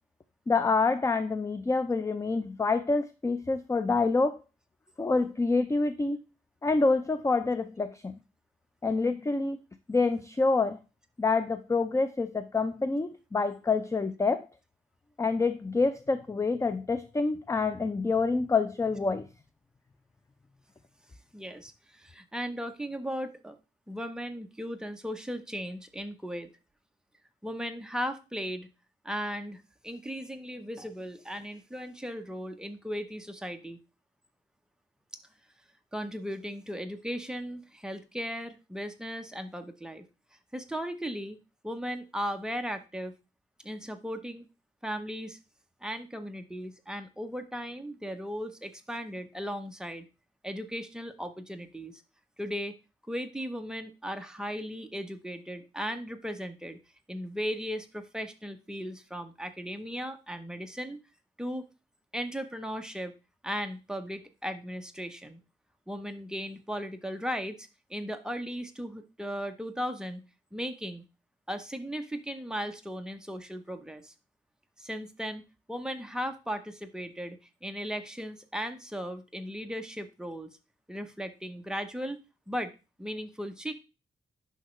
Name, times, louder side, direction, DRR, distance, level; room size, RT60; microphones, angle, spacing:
voice 1, 0.5-4.4 5.0-6.2 6.6-8.1 8.8-9.6 9.9-10.8 11.2-14.5 15.2-19.3, left 3 dB, 15° left, 11 dB, 0.4 m, -27 dB
voice 2, 21.3-23.6 23.9-26.5 27.4-28.7 29.0-33.8 35.9-40.0 40.5-41.4 41.6-43.1 43.6-44.4 44.8-45.4 45.8-50.1 50.4-52.0 52.4-52.7 53.1-56.8 57.1-61.0 61.4-61.6 62.1-63.1 63.4-65.4 65.9-70.2 70.5-71.0 71.5-74.1 74.8-75.4 75.7-80.5 80.9-82.2 82.5-82.7 83.0-83.7, equal, 5° right, 6 dB, 0.8 m, -37 dB
10.0 x 5.6 x 3.2 m, 0.30 s
wide cardioid pair, 140°, 20 cm